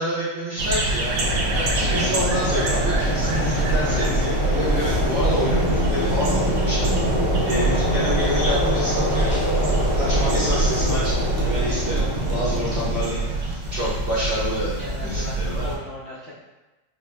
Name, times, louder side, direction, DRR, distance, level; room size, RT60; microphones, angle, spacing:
voice 1, 0.0-7.0 7.4-15.6, right 1 dB, 45° right, -10 dB, 0.8 m, -28 dB
sound 1, 0.6-15.8, right 2 dB, 65° right, 1.0 m, -24 dB
sound 2, 1.2-13.1, left 2 dB, 80° left, 1.2 m, -27 dB
voice 2, 11.8-12.1 14.8-16.3, left 1 dB, 55° left, -10 dB, 0.6 m, -37 dB
4.1 x 2.6 x 2.2 m, 1.1 s
omnidirectional pair, 1.9 m